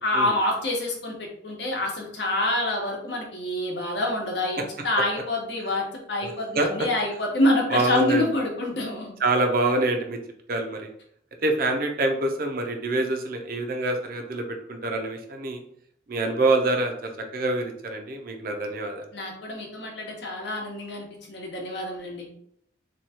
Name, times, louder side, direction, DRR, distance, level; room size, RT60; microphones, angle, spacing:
voice 1, 0.0-9.1 19.1-22.3, left 1 dB, 65° left, 0 dB, 0.9 m, -27 dB
voice 2, 6.2-6.7 7.7-8.3 9.2-10.2 10.5-10.9 11.4-15.6 16.1-19.1, right 2 dB, 50° right, 4 dB, 0.5 m, -26 dB
3.1 x 2.3 x 4.2 m, 0.70 s
head